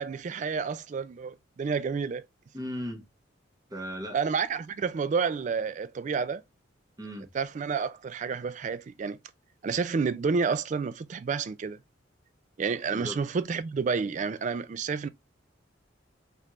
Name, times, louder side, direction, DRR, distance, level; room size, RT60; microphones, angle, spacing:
voice 1, 0.0-2.2 4.1-6.4 7.3-9.2 9.6-11.8 12.6-15.1, right 5 dB, 40° right, 0.3 m, -30 dB
voice 2, 2.5-3.1 3.7-4.2 7.0-7.3 12.9-13.2, equal, 20° right, 0.9 m, -36 dB
4.2 x 3.4 x 2.4 m
head